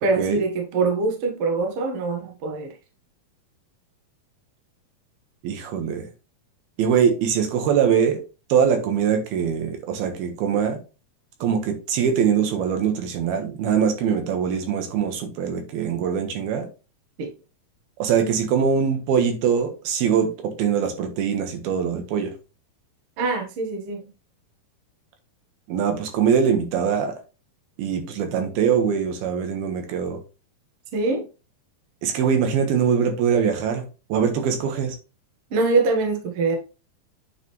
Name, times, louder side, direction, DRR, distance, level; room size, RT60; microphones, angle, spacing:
voice 1, 0.0-2.7 17.2-17.3 23.2-24.1 30.9-31.3 35.5-36.6, right 3 dB, 55° right, 1.7 m, -23 dB
voice 2, 5.4-6.1 6.8-8.2 8.5-10.8 11.4-16.7 18.0-20.3 20.6-22.3 25.7-27.1 27.8-30.2 32.0-33.8 34.1-35.0, right 7 dB, 80° right, 3.3 m, -22 dB
9.0 x 5.0 x 3.2 m
omnidirectional pair, 4.4 m